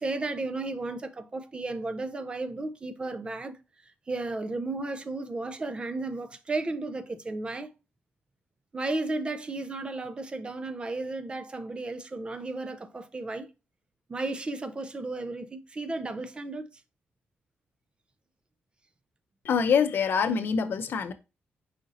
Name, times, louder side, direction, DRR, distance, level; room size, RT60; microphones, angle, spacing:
voice 1, 0.0-3.6 3.8-7.7 8.7-13.5 14.1-16.7, right 2 dB, 25° right, 0.4 m, -34 dB
voice 2, 19.4-21.1, left 6 dB, 60° left, 0.6 m, -25 dB
5.0 x 2.6 x 4.0 m
cardioid pair, 125°, 4 cm